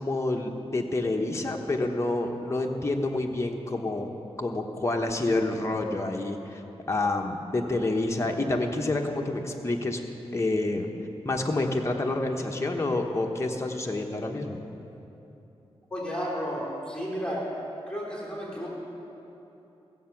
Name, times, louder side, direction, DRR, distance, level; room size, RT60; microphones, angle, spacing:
voice 1, 0.0-4.1 4.4-10.0 10.3-10.9 11.2-14.6, left 2 dB, 25° left, 1 dB, 1.1 m, -28 dB
voice 2, 15.9-17.4 17.9-18.7, equal, 5° left, -5 dB, 3.3 m, -32 dB
16.5 x 7.8 x 5.9 m, 3.0 s
cardioid pair, 60°, 11 cm